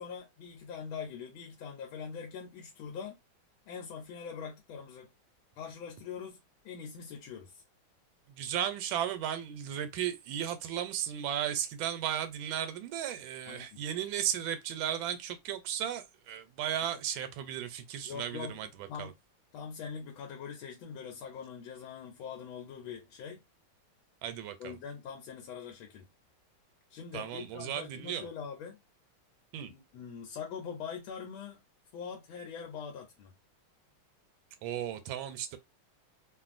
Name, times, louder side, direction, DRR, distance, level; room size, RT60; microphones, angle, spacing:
voice 1, 0.0-3.2 3.7-5.1 5.6-6.4 6.6-7.6 13.5-13.7 18.0-18.6 18.9-19.1 19.5-23.4 24.6-26.1 26.9-28.8 29.7-31.6 31.9-33.4, left 6 dB, 80° left, 1.4 m, -43 dB
voice 2, 8.3-19.1 24.2-24.8 27.1-28.3 29.5-29.7 34.6-35.6, right 10 dB, 80° right, 1.3 m, -35 dB
3.1 x 2.4 x 2.4 m
omnidirectional pair, 2.2 m